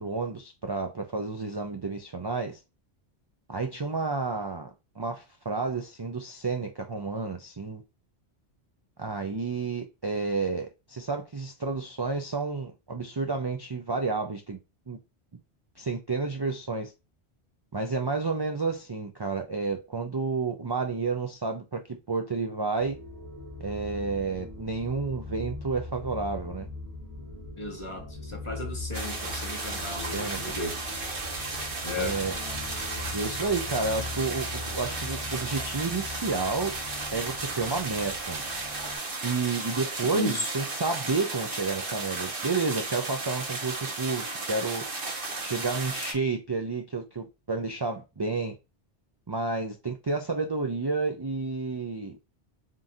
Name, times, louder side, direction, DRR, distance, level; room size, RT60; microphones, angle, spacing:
voice 1, 0.0-2.6 3.5-7.8 9.0-14.6 14.9-15.0 15.8-16.9 17.7-23.0 23.6-26.7 29.7-30.6 31.9-32.4 33.1-36.8 37.1-38.4 39.2-44.8 45.4-48.5 49.3-52.2, right 4 dB, 30° right, 0.4 m, -31 dB
sound 1, 22.7-39.0, left 2 dB, 85° left, 2.7 m, -40 dB
voice 2, 27.6-30.8 31.8-32.1 40.1-40.5, left 2 dB, 30° left, 1.1 m, -34 dB
sound 2, 28.9-46.1, right 3 dB, 50° right, 1.4 m, -34 dB
7.4 x 2.6 x 2.7 m
omnidirectional pair, 1.1 m